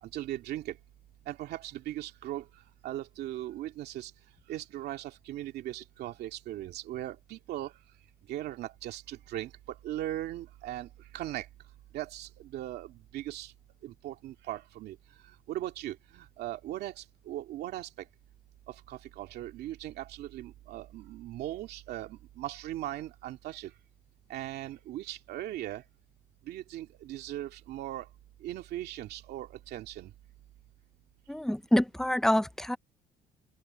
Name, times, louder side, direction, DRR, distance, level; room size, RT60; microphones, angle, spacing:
voice 1, 0.0-0.8 1.3-2.5 2.8-4.1 4.5-7.7 8.3-11.5 11.9-13.5 13.8-15.0 15.5-18.1 18.7-23.7 24.3-25.8 26.5-28.1 28.4-30.1, right 14 dB, 75° right, 2.4 m, -39 dB
voice 2, 31.3-32.8, left 1 dB, 5° left, 0.8 m, -26 dB
open air
cardioid pair, 110°, 17 cm